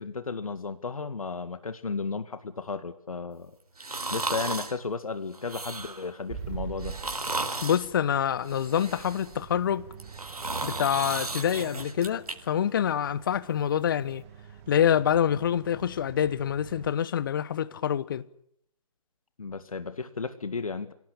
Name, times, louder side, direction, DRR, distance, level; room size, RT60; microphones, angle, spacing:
voice 1, 0.0-3.5 4.1-7.0 19.4-20.9, left 4 dB, 65° left, 2.1 m, -34 dB
sound 1, 3.8-4.8 5.3-6.1 6.8-7.9 8.4-9.4 9.9-12.3 12.7-12.8, right 2 dB, 70° right, 4.3 m, -34 dB
sound 2, 6.3-16.9, right 8 dB, 20° right, 2.0 m, -45 dB
voice 2, 7.6-9.8 10.6-14.2 14.7-18.2, left 9 dB, 35° left, 1.0 m, -26 dB
28.5 x 18.0 x 8.5 m
figure-of-eight pair, 145°, 20 cm